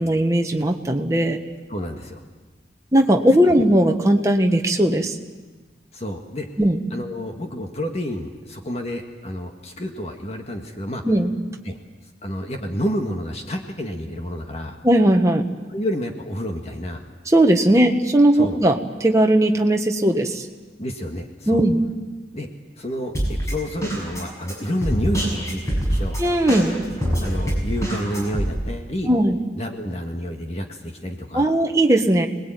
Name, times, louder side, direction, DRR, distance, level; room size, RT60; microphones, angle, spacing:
voice 1, 0.0-1.4 2.9-5.2 6.6-6.8 11.0-11.3 14.8-15.4 17.3-20.5 21.5-21.8 26.2-26.8 29.1-29.4 31.3-32.3, right 1 dB, 15° right, 3 dB, 1.5 m, -18 dB
voice 2, 1.7-2.2 3.4-3.5 5.9-6.5 6.9-11.0 11.6-11.8 12.2-14.8 15.7-17.0 18.3-18.6 20.8-21.6 22.3-22.5 22.8-26.2 27.2-29.1 29.5-31.5, equal, 35° left, 3 dB, 1.8 m, -29 dB
Drum kit, 23.1-28.5, equal, 15° left, 6.6 m, -25 dB
26.5 x 20.0 x 9.2 m, 1.3 s
head